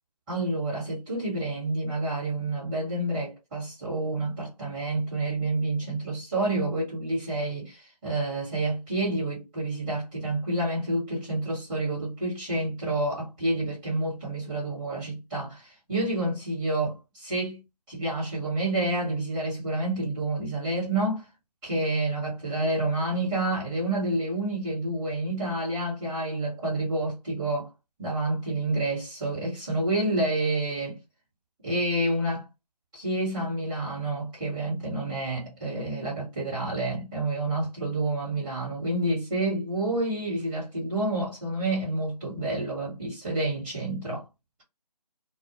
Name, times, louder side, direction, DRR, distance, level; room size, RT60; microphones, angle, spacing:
voice 1, 0.3-17.6 17.9-21.2 21.6-27.7 28.0-31.0 31.6-32.4 32.9-44.2, right 2 dB, 10° right, 1.2 m, -29 dB
2.2 x 2.1 x 2.8 m
figure-of-eight pair, 160°, 21 cm